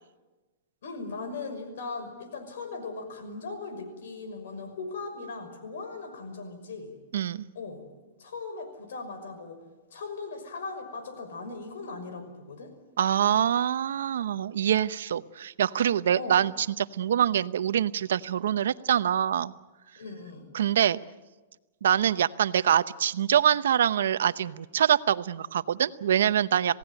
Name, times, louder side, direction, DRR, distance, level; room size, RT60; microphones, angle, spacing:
voice 1, 0.8-6.9 7.5-7.8 8.2-9.6 9.9-12.7 16.1-16.4 19.9-20.5, left 3 dB, 80° left, 8 dB, 5.9 m, -38 dB
voice 2, 7.1-7.5 13.0-19.5 20.5-21.0 21.8-26.8, right 9 dB, 85° right, 15 dB, 0.8 m, -25 dB
27.0 x 17.5 x 9.1 m, 1.2 s
hypercardioid pair, 155°, 0 cm